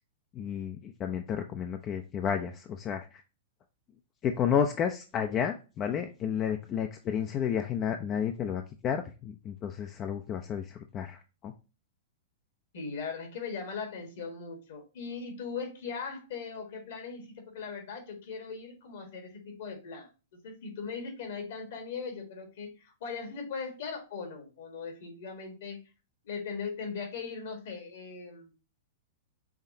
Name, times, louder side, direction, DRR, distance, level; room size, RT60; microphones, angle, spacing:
voice 1, 0.3-3.2 4.2-11.5, left 8 dB, 30° left, 0.5 m, -31 dB
voice 2, 12.7-20.1 20.4-25.8 26.2-28.5, left 5 dB, 60° left, 1.7 m, -39 dB
5.8 x 3.2 x 2.7 m
hypercardioid pair, 110°, 0 cm